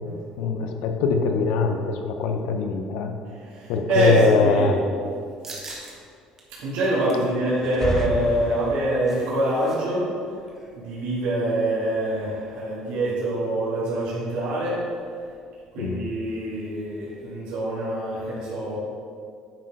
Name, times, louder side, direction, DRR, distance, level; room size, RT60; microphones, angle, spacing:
voice 1, 0.0-3.1 3.7-4.8 15.8-16.1, left 4 dB, 85° left, 5 dB, 0.7 m, -23 dB
voice 2, 3.5-4.7 6.6-10.1 10.8-14.8 15.7-18.8, right 1 dB, 70° right, -8 dB, 2.0 m, -25 dB
sound 1, 5.4-5.9 6.4-6.5 6.9-7.3 8.6-9.8 10.0-10.2 10.5-10.8, right 2 dB, 25° right, 1.2 m, -42 dB
sound 2, 7.6-9.2, left 2 dB, 20° left, 0.4 m, -30 dB
9.0 x 4.1 x 4.8 m, 2.3 s
cardioid pair, 160°, 2 cm